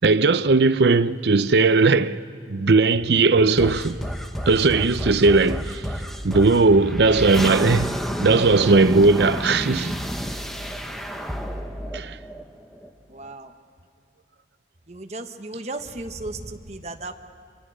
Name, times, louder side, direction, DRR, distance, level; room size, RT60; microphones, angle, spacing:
voice 1, 0.0-2.2 2.5-4.0 4.5-5.8 6.2-9.9 11.9-12.2, right 3 dB, 70° right, 0.6 m, -18 dB
sound 1, 3.6-12.9, equal, ahead, 1.0 m, -30 dB
voice 2, 13.1-13.5 14.9-17.1, right 2 dB, 40° right, 1.2 m, -35 dB
25.5 x 23.5 x 6.3 m
head